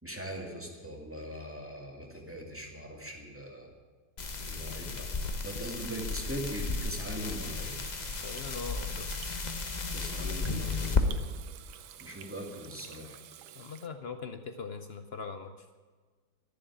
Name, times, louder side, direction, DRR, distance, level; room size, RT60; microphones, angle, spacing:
voice 1, 0.0-3.7 4.5-7.8 9.9-11.1 12.0-13.2, equal, 5° right, 0 dB, 2.2 m, -41 dB
sound 1, 4.2-11.0, left 4 dB, 35° left, 0.7 m, -34 dB
Water tap faucet / Sink (filling or washing), 7.6-13.9, right 10 dB, 90° right, 1.6 m, -50 dB
voice 2, 8.2-9.1 13.6-15.7, left 5 dB, 85° left, 8 dB, 0.5 m, -41 dB
11.5 x 11.0 x 9.9 m, 1.5 s
omnidirectional pair, 2.1 m